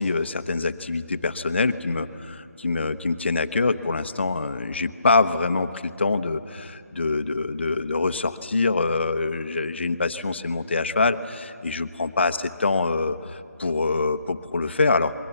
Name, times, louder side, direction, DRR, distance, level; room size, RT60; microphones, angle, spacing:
voice 1, 0.0-15.1, left 3 dB, 45° left, 11 dB, 0.9 m, -25 dB
27.5 x 22.0 x 7.1 m, 2.3 s
figure-of-eight pair, 170°, 9 cm